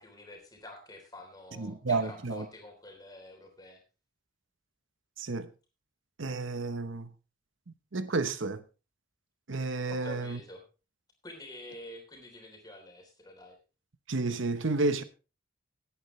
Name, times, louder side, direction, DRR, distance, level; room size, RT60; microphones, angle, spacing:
voice 1, 0.0-3.8 9.9-10.6 11.2-13.6, left 1 dB, 20° left, 3.5 m, -48 dB
voice 2, 1.6-2.5 5.2-5.5 6.2-7.1 7.9-8.6 9.5-10.4 14.1-15.0, right 3 dB, 75° right, 1.0 m, -31 dB
17.5 x 8.9 x 3.2 m
head